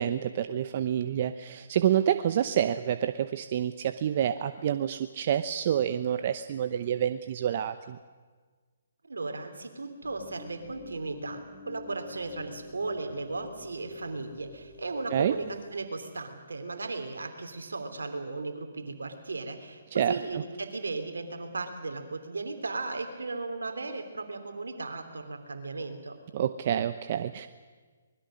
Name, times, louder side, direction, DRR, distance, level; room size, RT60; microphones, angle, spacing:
voice 1, 0.0-8.0 15.1-15.3 19.9-20.4 26.3-27.5, right 10 dB, 45° right, 10 dB, 0.8 m, -28 dB
voice 2, 9.1-11.4 11.7-26.2, right 3 dB, 80° right, 6 dB, 3.2 m, -36 dB
sound 1, 10.0-15.7, left 3 dB, 60° left, 7.3 m, -47 dB
25.0 x 20.5 x 6.4 m, 1.4 s
hypercardioid pair, 140°, 0 cm